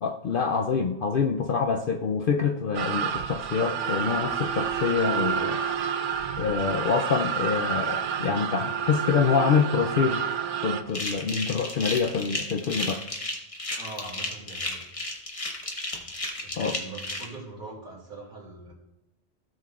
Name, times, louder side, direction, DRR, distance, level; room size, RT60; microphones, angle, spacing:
voice 1, 0.0-5.6 6.4-10.2 10.6-13.0 16.6-16.8, left 6 dB, 60° left, 5 dB, 0.6 m, -26 dB
sound 1, 2.7-10.8, right 7 dB, 85° right, 1.0 m, -29 dB
sound 2, 10.9-17.2, left 2 dB, 30° left, 1.2 m, -33 dB
voice 2, 13.8-14.8 15.8-16.1 16.4-18.7, right 2 dB, 45° right, -4 dB, 3.0 m, -42 dB
16.0 x 6.4 x 2.4 m, 0.90 s
omnidirectional pair, 1.2 m